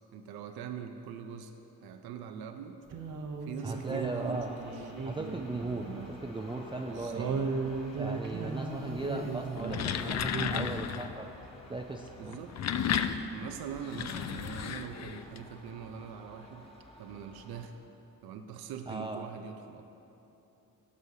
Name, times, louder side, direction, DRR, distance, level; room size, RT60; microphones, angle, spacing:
voice 1, 0.1-1.5 1.8-2.8 3.4-4.9 5.8-6.1 6.9-7.5 12.2-12.7 13.3-16.7 17.0-17.7 18.2-19.8, right 7 dB, 85° right, 6 dB, 0.5 m, -43 dB
sound 1, 2.9-6.2 6.5-6.6 7.2-10.0 10.2-10.7, right 4 dB, 60° right, 0.8 m, -36 dB
voice 2, 3.6-4.6 5.0-7.3 8.0-11.3 11.7-12.4 18.9-19.2, right 2 dB, 15° right, 2 dB, 0.4 m, -37 dB
sound 2, 3.7-17.7, left 1 dB, 15° left, 1.3 m, -53 dB
sound 3, 9.6-11.2 12.3-15.4, left 8 dB, 45° left, 0.5 m, -33 dB
16.0 x 6.3 x 2.7 m, 3.0 s
cardioid pair, 70°, 36 cm